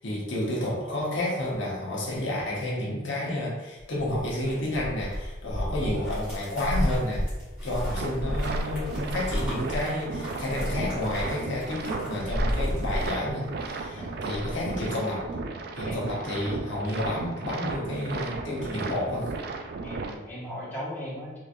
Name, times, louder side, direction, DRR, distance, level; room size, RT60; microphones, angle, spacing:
voice 1, 0.0-7.2 7.6-15.2 15.8-19.3, left 1 dB, 65° left, -5 dB, 0.9 m, -30 dB
sound 1, 3.8-13.7 14.0-14.9, equal, 10° right, 1.5 m, -32 dB
sound 2, 7.9-20.1, right 3 dB, 50° right, 0.3 m, -35 dB
voice 2, 15.8-16.3 19.8-21.4, equal, 10° left, -10 dB, 1.2 m, -39 dB
3.6 x 3.0 x 2.5 m, 1.1 s
head